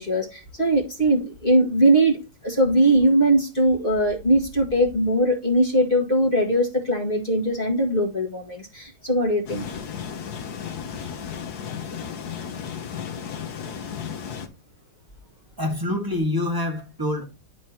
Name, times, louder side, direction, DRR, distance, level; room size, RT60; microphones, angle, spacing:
voice 1, 0.0-9.6, right 1 dB, 30° left, 1.6 m, -21 dB
sound 1, 9.5-14.5, left 7 dB, 55° left, 1.4 m, -34 dB
voice 2, 15.6-17.2, left 1 dB, 10° right, 1.2 m, -26 dB
11.0 x 4.7 x 2.8 m
omnidirectional pair, 2.2 m